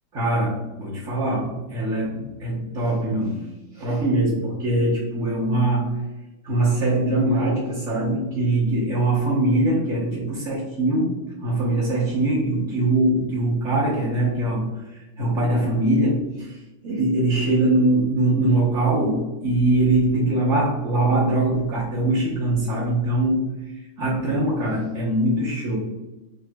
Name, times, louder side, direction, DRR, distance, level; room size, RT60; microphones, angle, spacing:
voice 1, 0.1-3.5 3.7-6.0 6.4-25.8, right 1 dB, 55° right, -7 dB, 0.9 m, -22 dB
5.5 x 2.5 x 2.2 m, 1.0 s
omnidirectional pair, 2.3 m